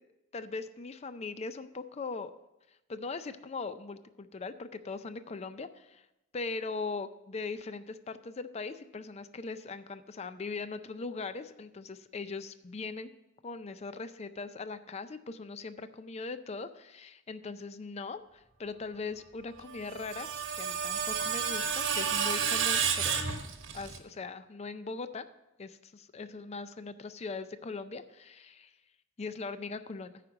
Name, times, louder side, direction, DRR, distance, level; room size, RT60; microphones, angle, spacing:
voice 1, 0.3-2.3 2.9-6.0 6.3-13.1 13.4-23.2 23.7-25.3 25.6-28.7 29.2-30.2, left 4 dB, 30° left, 12 dB, 0.4 m, -40 dB
Screech, 19.7-24.0, right 7 dB, 65° right, 1.0 m, -31 dB
9.2 x 5.1 x 7.1 m, 0.93 s
head